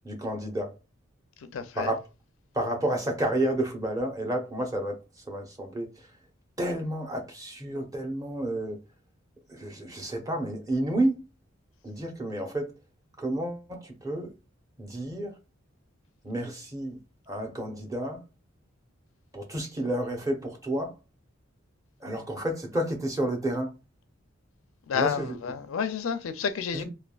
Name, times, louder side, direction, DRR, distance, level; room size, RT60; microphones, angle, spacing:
voice 1, 0.0-0.7 1.8-2.0 2.5-5.0 5.3-5.9 6.6-8.8 9.5-11.2 11.8-12.7 13.2-14.3 14.8-15.3 16.2-17.0 17.3-18.2 19.3-20.9 22.0-23.7 24.9-25.4 26.7-26.9, right 1 dB, 15° right, 0.8 m, -30 dB
voice 2, 1.4-1.9 24.9-26.8, left 6 dB, 80° left, 0.4 m, -30 dB
3.3 x 2.2 x 2.3 m
head